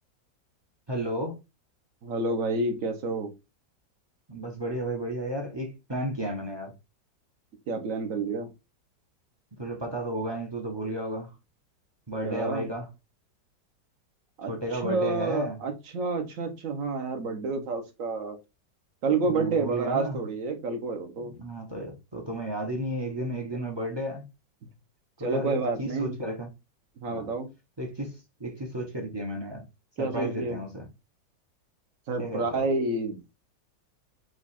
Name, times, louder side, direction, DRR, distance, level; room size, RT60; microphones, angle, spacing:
voice 1, 0.9-1.4 4.3-6.7 9.6-11.3 12.1-12.9 14.5-15.6 19.2-20.2 21.2-24.2 25.2-26.5 27.1-27.3 27.8-29.6 30.0-30.9 32.2-32.6, right 1 dB, 25° right, 0.6 m, -33 dB
voice 2, 2.0-3.3 7.7-8.5 12.2-12.7 14.4-18.4 19.0-21.3 25.2-26.2 27.0-27.5 30.0-30.6 32.1-33.2, right 3 dB, 55° right, 1.2 m, -29 dB
4.8 x 2.4 x 4.1 m
omnidirectional pair, 1.9 m